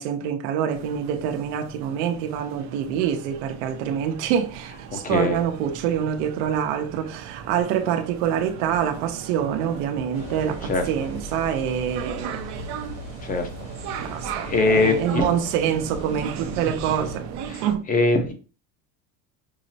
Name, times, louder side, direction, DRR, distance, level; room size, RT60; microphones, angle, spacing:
voice 1, 0.0-12.4 14.0-17.3 17.6-17.9, right 9 dB, 85° right, 0.7 m, -26 dB
sound 1, 0.7-17.8, right 7 dB, 50° right, 0.5 m, -37 dB
voice 2, 4.9-5.4 10.7-10.8 13.2-13.5 14.0-15.3 17.5-17.6 17.9-18.3, left 3 dB, 25° left, 0.7 m, -22 dB
sound 2, 10.1-17.2, left 3 dB, 85° left, 1.5 m, -40 dB
5.5 x 2.0 x 2.7 m
cardioid pair, 145°, 35 cm